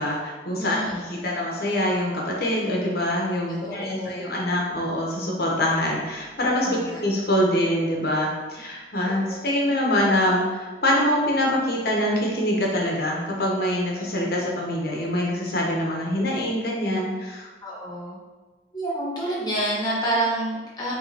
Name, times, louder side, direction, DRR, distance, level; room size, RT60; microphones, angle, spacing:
voice 1, 0.0-17.5, left 1 dB, 60° left, -2 dB, 1.0 m, -24 dB
voice 2, 0.6-1.3 3.6-4.3 6.6-7.0 9.0-9.5 14.0-14.1 17.6-18.2 18.7-21.0, right 1 dB, 25° left, -6 dB, 1.3 m, -29 dB
5.0 x 3.6 x 2.9 m, 1.3 s
head